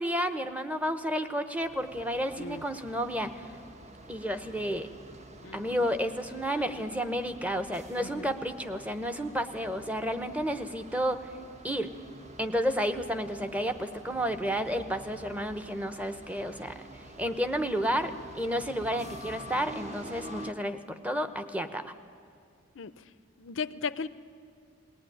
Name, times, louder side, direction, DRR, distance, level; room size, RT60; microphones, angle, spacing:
voice 1, 0.0-3.5 4.1-4.9 5.5-11.2 11.6-11.9 12.4-16.8 17.2-21.9, equal, 5° right, 9 dB, 0.9 m, -31 dB
sound 1, 1.6-20.5, right 1 dB, 35° right, 1.1 m, -48 dB
voice 2, 5.4-5.8 6.5-6.9 8.0-8.4 22.7-22.9 23.4-24.1, left 5 dB, 70° left, 14 dB, 0.6 m, -37 dB
20.0 x 18.0 x 10.0 m, 2.2 s
head